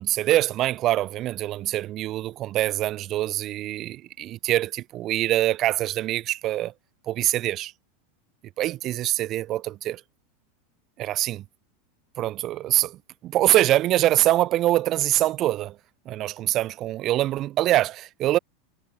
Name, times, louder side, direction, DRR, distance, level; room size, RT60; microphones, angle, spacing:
voice 1, 0.0-6.7 7.1-7.7 8.6-10.0 11.0-11.4 12.2-15.8 16.0-18.4, right 14 dB, 40° right, 1.4 m, -24 dB
supercardioid pair, 120°, 0 cm